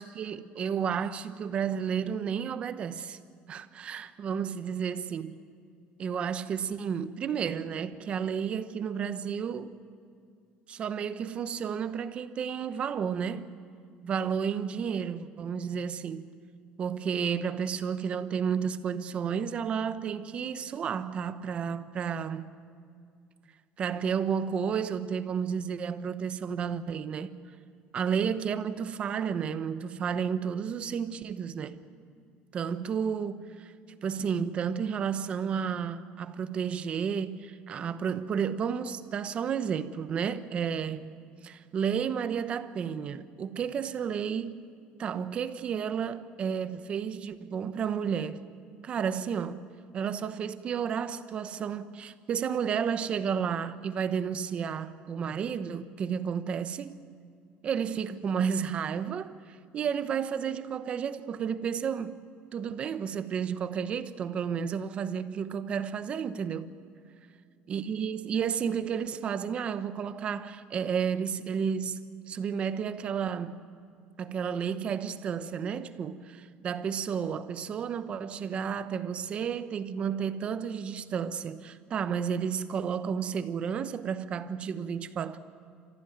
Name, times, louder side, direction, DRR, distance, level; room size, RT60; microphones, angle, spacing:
voice 1, 0.0-3.2 3.5-5.4 6.0-9.7 10.7-13.5 14.0-16.3 16.8-22.5 23.8-27.4 27.9-31.8 32.5-33.7 34.0-41.1 41.4-44.6 45.0-48.4 48.8-49.7 49.9-56.9 57.6-62.2 62.5-66.7 67.7-73.7 74.2-85.4, right 7 dB, 30° right, 0.9 m, -32 dB
30.0 x 15.0 x 9.4 m
cardioid pair, 170°, 4 cm